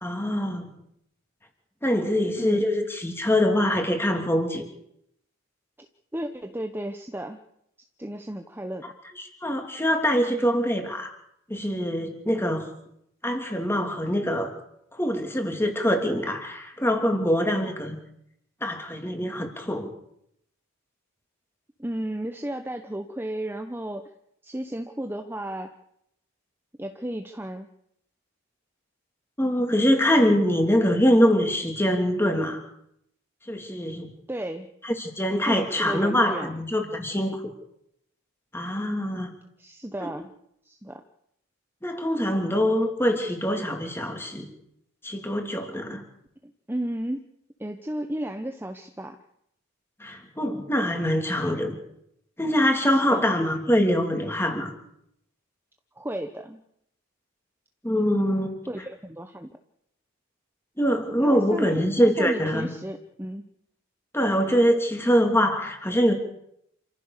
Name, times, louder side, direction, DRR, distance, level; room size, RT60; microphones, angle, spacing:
voice 1, 0.0-0.7 1.8-4.6 9.2-11.1 11.5-12.7 13.2-14.5 14.9-17.9 18.6-19.9 29.4-32.6 33.5-34.1 34.8-37.4 38.5-39.3 40.0-40.1 41.8-44.5 45.0-46.0 50.0-51.8 52.4-54.7 57.8-58.6 60.8-62.7 64.1-66.1, equal, 10° left, 3 dB, 3.2 m, -24 dB
voice 2, 6.1-7.4 8.0-8.9 21.8-24.0 24.4-25.7 26.8-27.7 34.3-34.7 35.5-36.5 37.2-37.4 39.6-40.3 40.6-41.0 46.4-47.3 47.6-49.2 53.1-53.3 56.0-56.6 58.7-59.5 61.2-63.5, right 1 dB, 10° right, 6 dB, 0.9 m, -33 dB
28.0 x 15.0 x 6.7 m, 0.76 s
head